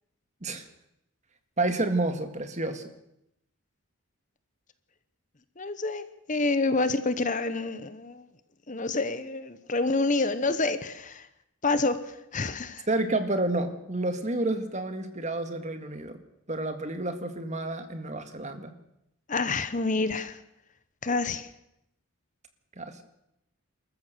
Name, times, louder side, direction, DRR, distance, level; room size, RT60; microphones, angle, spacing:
voice 1, 1.6-2.8 12.9-16.2 16.5-18.7 22.8-23.0, right 2 dB, 30° right, 1.9 m, -30 dB
voice 2, 5.6-8.2 8.7-11.3 11.6-12.9 19.3-20.4 21.0-21.5, left 3 dB, 35° left, 1.0 m, -28 dB
27.5 x 14.0 x 6.8 m
head